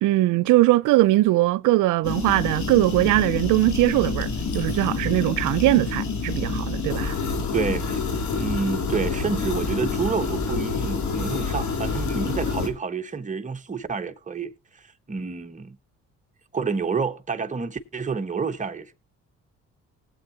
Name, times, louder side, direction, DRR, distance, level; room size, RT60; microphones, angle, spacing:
voice 1, 0.0-4.3 4.5-7.2, right 18 dB, 90° right, 0.5 m, -20 dB
sound 1, 2.0-12.7, left 4 dB, 70° left, 2.7 m, -27 dB
voice 2, 7.5-8.0 8.3-15.8 16.5-18.9, right 5 dB, 25° right, 1.3 m, -29 dB
19.5 x 8.3 x 2.8 m
cardioid pair, 90°, 30 cm